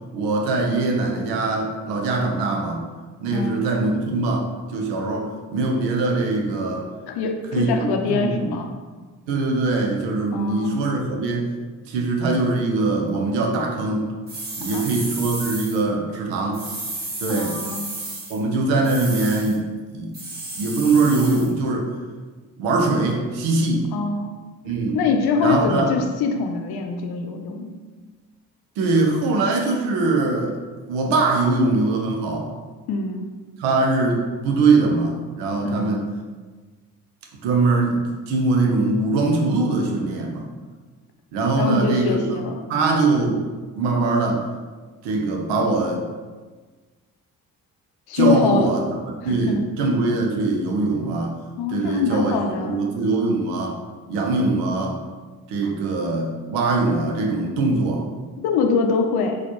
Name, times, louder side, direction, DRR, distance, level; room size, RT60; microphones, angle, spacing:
voice 1, 0.1-2.8 3.2-6.9 7.5-8.5 9.3-11.5 11.9-14.1 14.6-16.6 17.2-17.6 18.3-19.7 19.9-20.2 20.6-21.9 22.6-23.9 24.6-25.0 25.4-25.9 28.8-30.6 30.9-32.5 33.6-36.1 37.4-40.5 41.3-42.4 42.7-43.4 43.8-44.4 45.0-46.0 48.1-48.9 49.2-51.4 51.7-53.8 54.1-55.0 55.5-58.1, right 3 dB, 70° right, 1 dB, 0.7 m, -22 dB
voice 2, 3.3-3.7 7.1-8.7 10.3-10.8 14.6-14.9 17.3-18.0 23.9-24.3 24.9-27.7 32.9-33.3 35.6-36.1 41.6-42.6 48.1-48.7 49.2-49.6 51.6-52.9 58.4-59.4, left 5 dB, 55° left, 4 dB, 0.6 m, -24 dB
sound 1, 14.3-15.8 16.5-18.4 18.8-19.6 20.1-21.5, right 2 dB, 20° right, 1.2 m, -33 dB
4.1 x 2.4 x 2.9 m, 1.4 s
hypercardioid pair, 40°, 45 cm